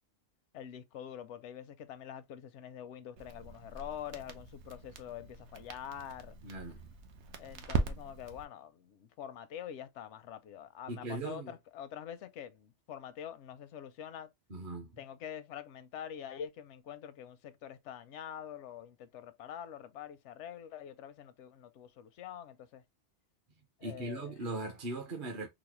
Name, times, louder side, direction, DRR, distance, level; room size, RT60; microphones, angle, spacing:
voice 1, 0.5-6.4 7.4-14.3 15.0-22.8 23.8-24.3, left 9 dB, 85° left, 0.9 m, -45 dB
Crackle, 3.2-8.4, right 4 dB, 80° right, 1.0 m, -40 dB
voice 2, 6.4-6.9 10.9-11.5 14.5-15.0 23.8-25.5, right 2 dB, 50° right, 0.9 m, -39 dB
4.0 x 2.0 x 2.9 m
omnidirectional pair, 1.2 m